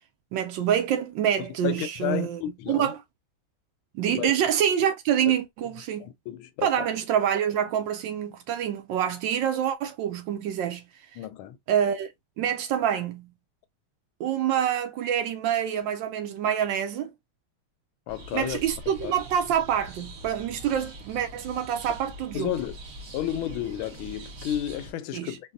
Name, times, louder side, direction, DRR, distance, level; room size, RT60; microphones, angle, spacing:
voice 1, 0.3-2.4 2.7-3.0 3.9-6.1 6.6-10.8 11.7-12.1 12.4-13.3 14.2-17.1 18.3-22.5 25.1-25.4, right 9 dB, 75° right, 1.2 m, -26 dB
voice 2, 1.4-2.9 4.1-4.4 5.3-5.4 6.0-6.9 11.2-11.6 18.1-18.6 19.0-19.1 22.3-22.8 23.1-25.5, left 12 dB, 80° left, 1.4 m, -32 dB
sound 1, 18.1-24.9, right 1 dB, 40° right, 1.5 m, -43 dB
4.0 x 2.2 x 2.5 m
omnidirectional pair, 2.3 m